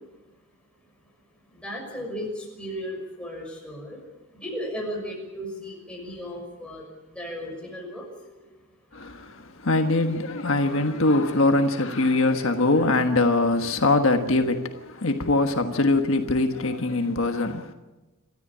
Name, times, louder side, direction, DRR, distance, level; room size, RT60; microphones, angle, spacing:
voice 1, 1.6-4.0 4.3-6.8 7.1-8.1 8.4-8.5, equal, 5° left, 6.2 m, -35 dB
voice 2, 8.9-17.7, left 2 dB, 70° left, 1.4 m, -22 dB
28.5 x 13.5 x 8.7 m
head